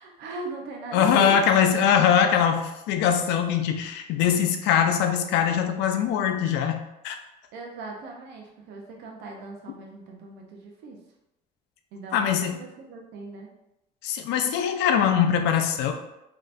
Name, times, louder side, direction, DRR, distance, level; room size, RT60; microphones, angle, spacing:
voice 1, 0.0-1.3 1.6-1.8 4.2-4.4 7.5-11.0 11.9-13.5, right 3 dB, 85° right, 0 dB, 0.6 m, -39 dB
voice 2, 0.9-7.2 12.1-12.6 14.0-15.9, left 8 dB, 85° left, 5 dB, 0.4 m, -22 dB
3.2 x 2.8 x 2.4 m, 0.88 s
cardioid pair, 105°, 17 cm